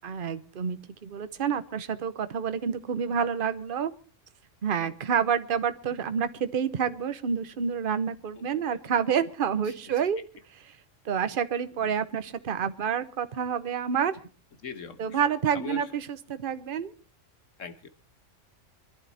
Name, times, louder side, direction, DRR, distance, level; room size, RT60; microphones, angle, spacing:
voice 1, 0.0-3.9 4.6-10.2 11.0-14.2 15.0-16.9, right 7 dB, 50° right, 12 dB, 1.0 m, -28 dB
voice 2, 14.6-15.2 15.5-15.8 17.6-17.9, left 5 dB, 80° left, 11 dB, 1.7 m, -41 dB
24.5 x 11.5 x 4.2 m, 0.38 s
omnidirectional pair, 1.3 m